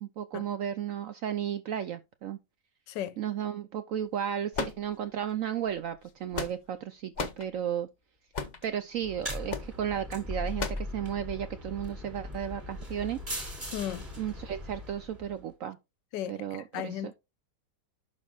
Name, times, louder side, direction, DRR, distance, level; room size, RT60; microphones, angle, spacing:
voice 1, 0.0-2.4 3.2-7.9 8.6-13.2 14.2-15.8 16.3-17.1, right 9 dB, 75° right, 0.8 m, -34 dB
voice 2, 2.9-3.2 13.7-14.1 16.1-17.1, left 11 dB, 85° left, 1.3 m, -36 dB
sound 1, 4.5-5.3 6.0-6.8 7.2-7.5 8.3-8.7 9.5-9.7 10.6-10.9, left 4 dB, 65° left, 0.4 m, -35 dB
sound 2, 9.0-15.4, left 1 dB, 25° right, 2.9 m, -39 dB
11.5 x 5.3 x 2.3 m
omnidirectional pair, 1.9 m